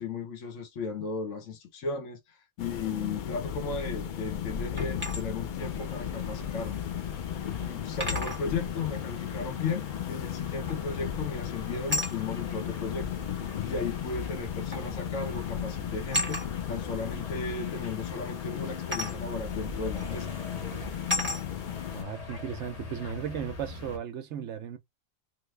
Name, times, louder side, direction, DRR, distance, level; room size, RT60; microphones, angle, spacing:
voice 1, 0.0-7.2 7.6-13.1 13.6-16.4 16.7-20.3, left 4 dB, 70° left, 1.1 m, -35 dB
sound 1, 2.6-22.0, left 9 dB, 90° left, 0.4 m, -35 dB
sound 2, 4.8-5.2 6.7-6.8 8.0-8.4 10.7-11.0 11.9-12.2 13.4-13.5 14.7-14.9 15.2-15.5 16.1-16.5 18.9-19.2 20.0-20.1 21.1-21.4, left 1 dB, 10° right, 1.1 m, -32 dB
sound 3, 5.6-24.0, left 3 dB, 40° left, 0.6 m, -43 dB
voice 2, 21.9-24.8, right 9 dB, 65° right, 0.9 m, -36 dB
3.1 x 2.2 x 3.1 m
omnidirectional pair, 1.4 m